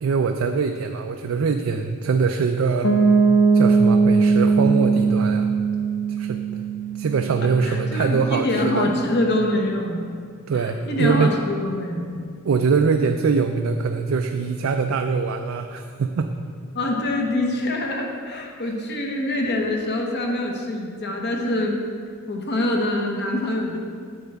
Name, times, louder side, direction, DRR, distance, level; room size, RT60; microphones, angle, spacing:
voice 1, 0.0-2.9 3.5-5.5 6.1-6.4 7.0-8.9 10.5-11.3 12.4-16.3, right 5 dB, 70° right, 5 dB, 0.4 m, -23 dB
Piano, 2.8-8.5, right 4 dB, 70° left, 0.7 m, -20 dB
voice 2, 7.6-10.1 10.5-12.1 16.7-21.8 22.3-23.8, left 1 dB, 55° left, 1 dB, 1.1 m, -24 dB
9.4 x 7.8 x 3.5 m, 2.1 s
head